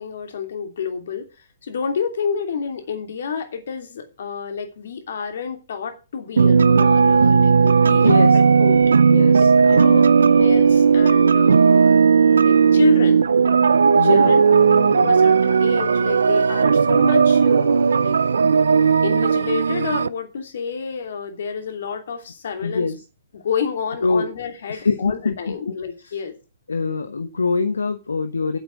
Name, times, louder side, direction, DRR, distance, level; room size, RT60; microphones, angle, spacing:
voice 1, 0.0-8.8 9.6-12.0 12.4-13.3 14.0-14.4 14.9-18.2 19.0-22.9 23.3-26.3, left 6 dB, 60° left, 5 dB, 2.8 m, -29 dB
sound 1, 6.4-20.1, right 5 dB, 75° right, 0.5 m, -15 dB
voice 2, 7.9-8.4 9.1-10.1 13.9-15.2 22.6-23.0 24.0-24.3 24.7-25.5 26.0-26.1 26.7-28.6, left 4 dB, 80° left, 10 dB, 1.1 m, -24 dB
8.2 x 8.0 x 7.5 m, 0.32 s
figure-of-eight pair, 125°, 0 cm